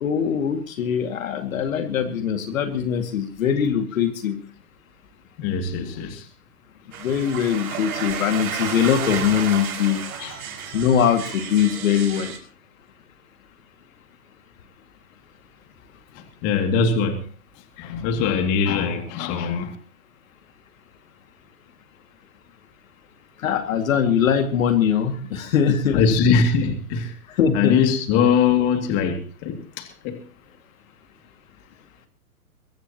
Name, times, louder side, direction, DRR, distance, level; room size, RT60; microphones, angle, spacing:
voice 1, 0.0-4.4 7.0-10.0 10.7-12.3 23.4-26.0 27.4-27.8, left 8 dB, 60° left, 2.3 m, -22 dB
voice 2, 5.4-6.3 10.2-10.4 16.1-17.2 17.8-19.7 25.9-27.1 27.5-30.2, left 6 dB, 35° left, 2.5 m, -22 dB
sound 1, 6.9-12.4, right 7 dB, 65° right, 5.7 m, -32 dB
23.0 x 15.0 x 3.0 m
hypercardioid pair, 135°, 45 cm